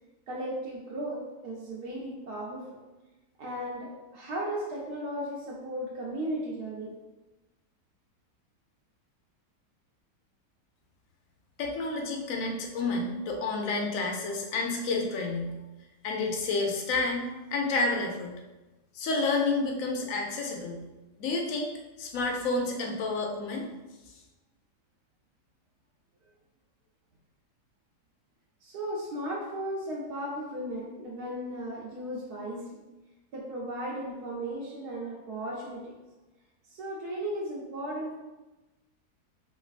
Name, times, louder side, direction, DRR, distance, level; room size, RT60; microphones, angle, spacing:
voice 1, 0.3-2.7 3.4-6.9 28.6-32.8 33.3-35.9 36.7-38.1, right 1 dB, 75° right, -4 dB, 1.2 m, -36 dB
voice 2, 11.6-15.5 16.0-18.4 18.9-20.8 21.2-21.7 22.0-23.7, left 3 dB, 65° left, 1 dB, 0.9 m, -30 dB
3.3 x 3.1 x 2.4 m, 1.1 s
omnidirectional pair, 1.8 m